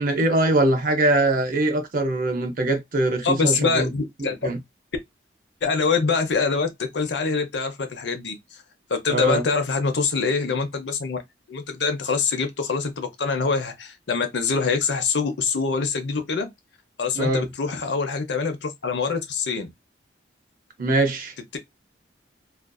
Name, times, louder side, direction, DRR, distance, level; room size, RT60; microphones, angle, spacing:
voice 1, 0.0-3.9 4.2-4.6 9.1-9.4 17.1-17.5 20.8-21.3, right 2 dB, 45° right, 0.6 m, -22 dB
voice 2, 3.2-4.5 5.6-8.6 8.9-11.2 11.5-16.5 17.0-19.7 21.5-21.6, left 4 dB, 65° left, 0.6 m, -25 dB
2.5 x 2.4 x 2.2 m
head